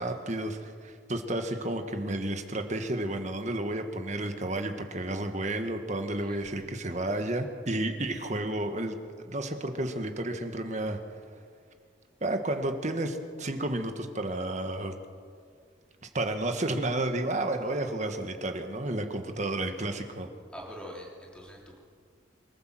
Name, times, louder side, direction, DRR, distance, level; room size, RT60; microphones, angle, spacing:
voice 1, 0.0-9.0 9.3-11.0 12.2-14.9 16.1-20.3, right 1 dB, 35° right, 6 dB, 1.6 m, -31 dB
voice 2, 20.5-21.8, equal, 5° left, -3 dB, 3.5 m, -44 dB
25.0 x 14.5 x 7.7 m, 2.1 s
head